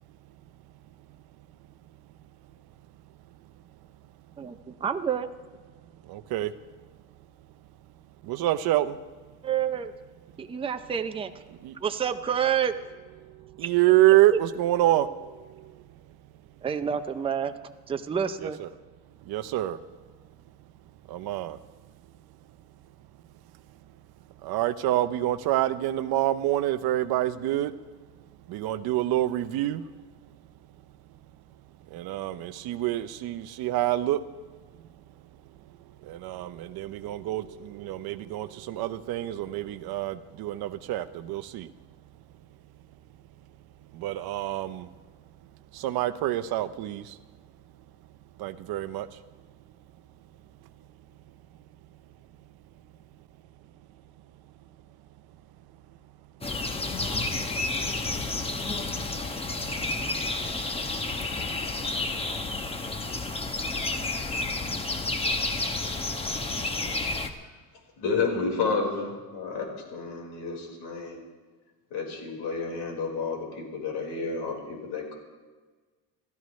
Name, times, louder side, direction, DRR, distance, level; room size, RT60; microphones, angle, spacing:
voice 1, 4.4-5.3 9.4-9.9 10.4-11.3 11.8-12.7 14.3-14.4 16.6-17.5 17.9-18.6, right 8 dB, 15° right, 7 dB, 0.5 m, -28 dB
voice 2, 6.1-6.5 8.3-8.9 11.6-11.7 13.6-15.1 18.4-18.7 19.3-19.8 21.1-21.6 24.4-27.7 28.5-29.8 31.9-34.2 36.1-41.7 44.0-44.8 45.8-47.0 48.4-49.1, right 14 dB, 65° right, 12 dB, 0.8 m, -26 dB
sound 1, 56.4-67.3, left 2 dB, 15° left, 0.9 m, -30 dB
voice 3, 68.0-71.2 71.9-75.1, left 4 dB, 75° left, 0 dB, 4.8 m, -31 dB
29.5 x 13.0 x 3.2 m, 1.4 s
cardioid pair, 155°, 40 cm